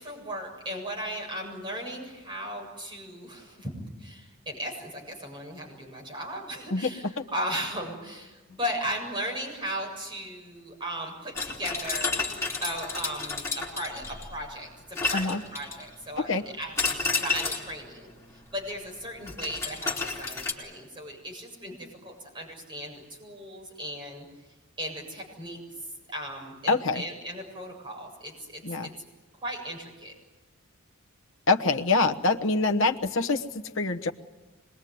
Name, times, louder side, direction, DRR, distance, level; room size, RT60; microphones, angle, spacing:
voice 1, 0.0-3.7 4.0-12.2 12.6-24.3 24.8-25.6 26.1-28.9 29.4-30.1, equal, 20° right, 0 dB, 7.4 m, -37 dB
sound 1, 11.3-14.3 14.9-15.9 16.8-17.7 19.3-20.5, left 4 dB, 10° left, 4.3 m, -31 dB
voice 2, 26.7-27.0 28.6-28.9 31.5-34.1, left 3 dB, 60° left, 4 dB, 1.2 m, -25 dB
26.0 x 22.0 x 9.5 m, 1.2 s
head